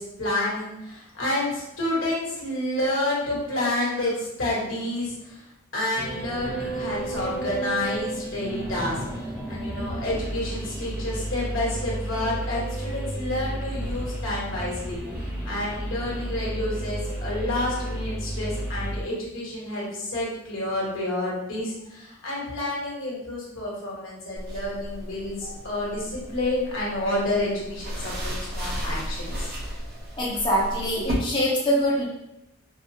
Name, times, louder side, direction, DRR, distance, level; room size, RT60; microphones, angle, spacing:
voice 1, 0.0-5.4 5.7-29.5, left 1 dB, 70° left, -5 dB, 1.3 m, -29 dB
sound 1, 6.0-19.0, right 1 dB, 5° right, 0.5 m, -32 dB
sound 2, 24.4-31.1, equal, 45° right, 0.7 m, -35 dB
voice 2, 30.2-32.0, equal, 20° left, -6 dB, 0.8 m, -24 dB
4.6 x 2.0 x 2.7 m, 0.89 s
head